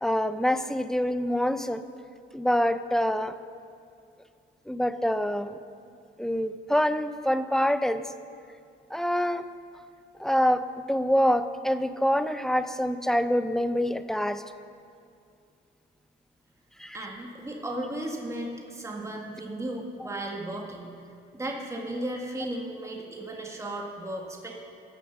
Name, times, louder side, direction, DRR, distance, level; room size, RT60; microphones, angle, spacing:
voice 1, 0.0-1.8 2.3-3.4 4.7-5.6 6.2-8.0 8.9-9.5 10.2-14.4 16.8-17.0, equal, ahead, 11 dB, 0.5 m, -26 dB
voice 2, 16.9-21.0 21.3-24.5, right 1 dB, 15° right, 0 dB, 1.7 m, -35 dB
14.0 x 7.1 x 6.0 m, 2.5 s
cardioid pair, 90°, 20 cm